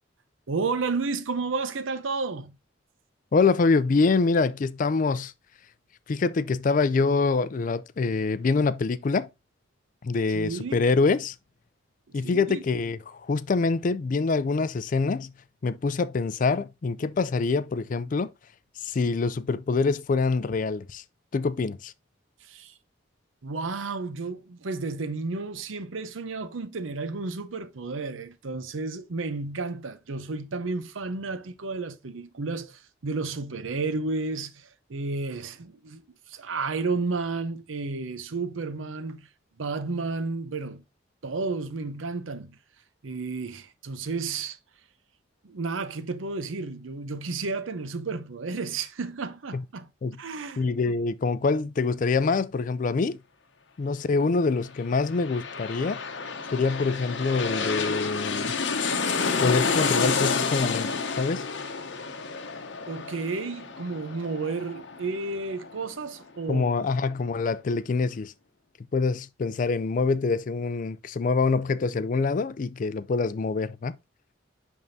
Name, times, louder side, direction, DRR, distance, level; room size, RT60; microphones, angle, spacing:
voice 1, 0.5-2.6 10.3-10.8 12.1-12.6 22.4-22.7 23.4-36.0 36.3-39.3 39.6-40.8 41.2-42.6 43.0-44.6 45.4-49.9 50.2-50.7 62.9-66.6, right 3 dB, 90° right, 0.7 m, -32 dB
voice 2, 3.3-5.3 6.1-9.3 10.0-11.4 12.1-15.3 15.6-18.3 18.8-21.0 21.3-21.9 49.5-49.6 50.0-50.2 50.6-53.2 53.8-56.0 56.5-58.6 59.4-61.5 66.5-68.3 68.9-74.0, left 4 dB, 45° left, 0.4 m, -25 dB
sound 1, 54.8-66.2 66.5-66.6, left 5 dB, 65° left, 0.9 m, -30 dB
10.5 x 3.6 x 2.7 m
head